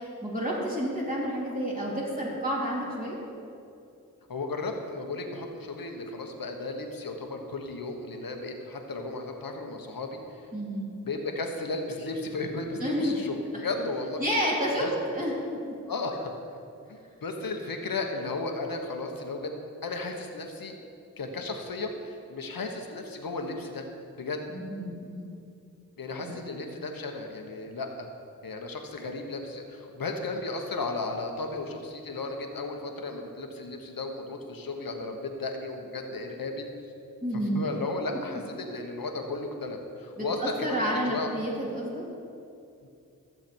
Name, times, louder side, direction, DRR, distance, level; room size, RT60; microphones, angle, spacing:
voice 1, 0.2-3.2 10.5-10.9 12.8-13.2 14.2-15.3 24.5-25.3 26.2-26.4 37.2-37.6 40.2-42.0, equal, 25° right, -6 dB, 3.0 m, -30 dB
voice 2, 4.3-10.2 11.0-14.2 14.8-14.9 15.9-16.3 16.9-19.5 19.8-20.7 21.2-23.8 24.1-24.5 26.0-28.1 28.4-36.7 37.5-41.3 42.8-42.9, left 3 dB, 75° left, 3 dB, 1.3 m, -34 dB
15.0 x 7.1 x 4.5 m, 2.6 s
cardioid pair, 40°, 35 cm